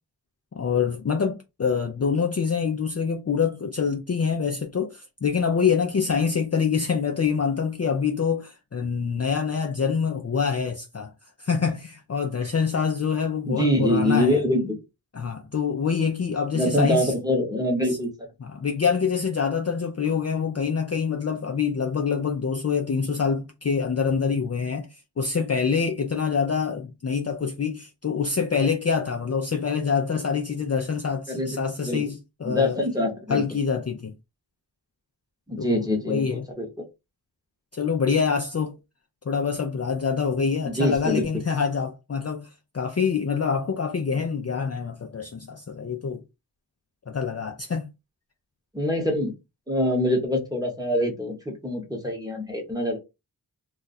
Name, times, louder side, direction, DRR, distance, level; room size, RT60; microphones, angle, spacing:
voice 1, 0.5-11.1 11.4-14.4 15.1-17.1 17.9-18.0 18.4-32.8 33.3-34.1 35.6-36.5 37.7-38.8 39.3-46.2 47.1-47.9, left 6 dB, 40° left, 0.4 m, -26 dB
voice 2, 13.5-14.8 16.5-18.1 31.3-32.0 32.4-33.4 35.5-36.7 40.6-41.4 48.7-49.3 49.7-53.0, left 1 dB, 10° right, 1.0 m, -24 dB
2.3 x 2.2 x 3.9 m
wide cardioid pair, 75°, 42 cm